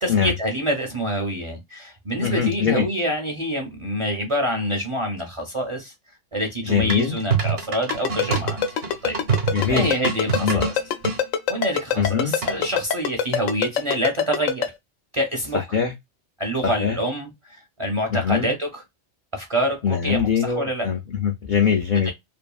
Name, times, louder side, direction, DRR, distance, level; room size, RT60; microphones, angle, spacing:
voice 1, 0.0-5.9 6.3-8.6 9.0-9.2 9.7-10.7 11.5-14.7 15.1-15.6 16.4-17.3 17.8-18.8 19.3-20.9 21.9-22.1, equal, 35° right, 0.6 m, -26 dB
voice 2, 2.2-2.9 6.6-7.1 9.5-9.9 10.3-10.6 12.0-12.3 15.5-15.9 16.6-17.0 18.1-18.5 19.8-22.1, left 7 dB, 65° left, 0.4 m, -22 dB
sound 1, 6.9-11.2 12.4-12.8, right 5 dB, 70° right, 1.1 m, -26 dB
Ringtone, 7.9-14.7, left 7 dB, 90° left, 1.0 m, -22 dB
2.7 x 2.5 x 2.3 m
omnidirectional pair, 1.3 m